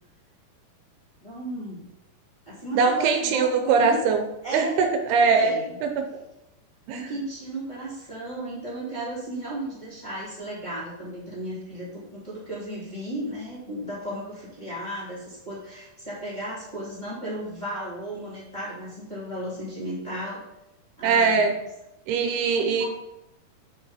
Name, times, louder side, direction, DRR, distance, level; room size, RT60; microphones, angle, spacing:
voice 1, 1.2-1.8 2.5-4.0 4.4-4.8 5.3-5.8 6.9-20.4 21.0-21.4 22.5-22.9, right 1 dB, 10° left, -8 dB, 2.8 m, -35 dB
voice 2, 2.7-4.3 4.5-6.1 6.9-7.0 21.0-21.6 22.1-22.9, right 5 dB, 80° right, 5 dB, 2.8 m, -22 dB
8.9 x 6.5 x 4.3 m, 0.90 s
omnidirectional pair, 4.7 m